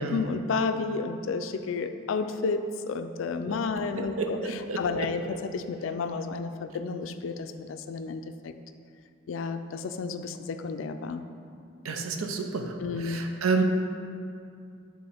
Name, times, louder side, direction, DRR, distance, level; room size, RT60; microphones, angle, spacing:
voice 1, 0.1-4.4 4.8-5.2 5.5-8.5 9.3-11.2 12.8-13.2, left 4 dB, 70° left, 9 dB, 0.3 m, -31 dB
voice 2, 3.8-5.2 11.8-13.6, right 4 dB, 90° right, 5 dB, 0.6 m, -30 dB
9.3 x 3.7 x 3.4 m, 2.4 s
head